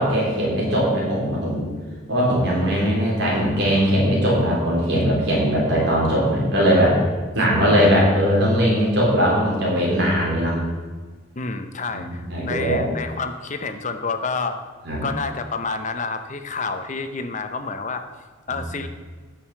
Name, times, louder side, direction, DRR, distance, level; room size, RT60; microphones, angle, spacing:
voice 1, 0.0-1.7 2.1-7.0 7.3-10.6 11.9-12.8 14.9-15.0 18.5-18.6, equal, 55° right, -4 dB, 3.7 m, -20 dB
voice 2, 11.3-14.6 15.0-18.1 18.5-18.9, left 4 dB, 35° left, 8 dB, 0.8 m, -29 dB
9.3 x 6.5 x 7.1 m, 1.4 s
head